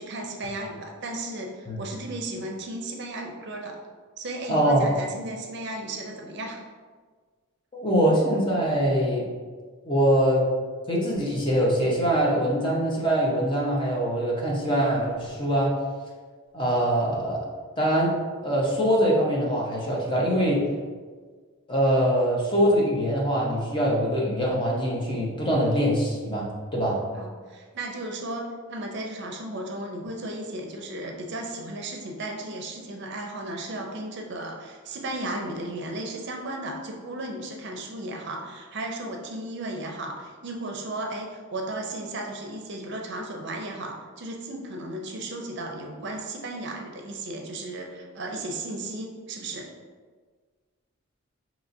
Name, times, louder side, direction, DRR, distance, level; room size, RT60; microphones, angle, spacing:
voice 1, 0.0-3.8 4.2-6.6 27.1-49.7, right 1 dB, 55° right, 1 dB, 0.5 m, -35 dB
voice 2, 4.5-4.9 7.7-9.3 9.8-10.5 10.9-15.7 16.5-17.4 17.8-18.2 18.4-20.6 21.7-27.0, equal, 25° left, -4 dB, 0.7 m, -23 dB
5.4 x 2.9 x 2.6 m, 1.5 s
head